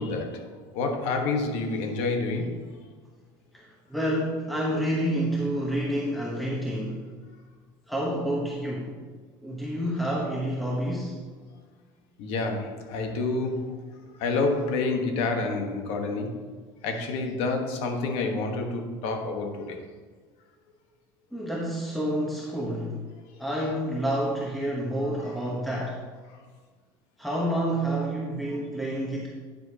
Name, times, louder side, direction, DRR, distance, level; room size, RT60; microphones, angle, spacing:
voice 1, 0.0-2.7 12.2-13.8 14.1-16.5 16.8-19.8 26.3-26.4, left 3 dB, 65° left, 4 dB, 1.3 m, -28 dB
voice 2, 3.5-7.0 7.9-8.9 9.4-11.2 21.3-23.0 23.4-26.0 27.2-29.3, right 1 dB, ahead, -4 dB, 1.0 m, -29 dB
9.1 x 7.8 x 2.8 m, 1.5 s
cardioid pair, 135°, 11 cm